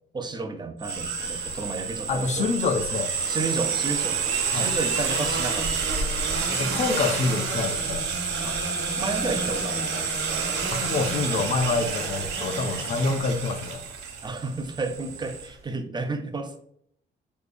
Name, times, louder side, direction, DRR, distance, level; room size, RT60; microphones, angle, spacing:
voice 1, 0.1-2.5 3.3-4.2 4.5-5.7 8.4-8.6 9.0-10.2 12.8-13.0 14.2-16.6, right 3 dB, 20° right, 6 dB, 0.5 m, -32 dB
sound 1, 0.8-15.5, right 5 dB, 85° right, 0.9 m, -28 dB
voice 2, 2.1-3.1 4.5-4.7 6.5-8.1 10.7-13.8, left 4 dB, 35° left, 7 dB, 0.5 m, -26 dB
4.9 x 2.1 x 2.5 m, 0.68 s
cardioid pair, 90°, 20 cm